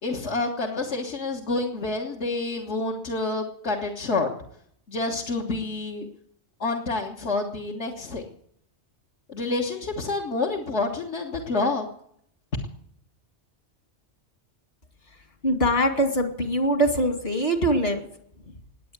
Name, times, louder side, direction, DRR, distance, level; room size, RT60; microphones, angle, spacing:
voice 1, 0.0-4.3 4.9-6.1 6.6-8.2 9.3-11.9, left 3 dB, 75° left, -1 dB, 1.7 m, -28 dB
voice 2, 15.4-18.0 18.5-18.6, equal, 60° left, 5 dB, 2.6 m, -23 dB
20.0 x 8.4 x 8.0 m, 0.69 s
omnidirectional pair, 1.2 m